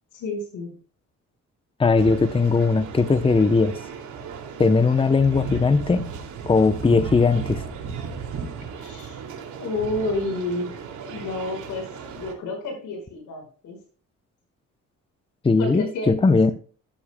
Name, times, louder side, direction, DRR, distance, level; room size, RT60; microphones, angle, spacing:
voice 1, 0.1-0.8 8.8-9.2 9.6-10.8 11.1-13.8 15.6-16.5, left 2 dB, 85° left, 5.2 m, -30 dB
voice 2, 1.8-3.7 4.6-6.1 6.5-7.6 15.4-16.5, left 4 dB, 20° left, 0.7 m, -19 dB
sound 1, 2.0-12.3, right 6 dB, 80° right, 2.5 m, -35 dB
12.5 x 12.0 x 2.2 m
cardioid pair, 90°, 30 cm